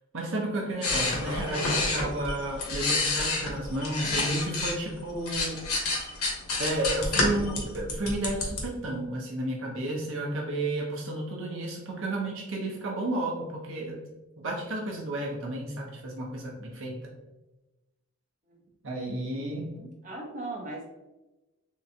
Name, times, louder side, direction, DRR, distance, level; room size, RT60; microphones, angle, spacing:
voice 1, 0.1-5.6 6.6-14.0 14.4-17.1 18.8-19.7, right 1 dB, 60° right, -2 dB, 0.8 m, -32 dB
sound 1, 0.8-4.8 5.1-8.6, left 2 dB, 90° left, 1.1 m, -29 dB
voice 2, 19.3-20.8, right 2 dB, 35° right, -3 dB, 1.1 m, -39 dB
3.7 x 3.2 x 2.8 m, 1.1 s
head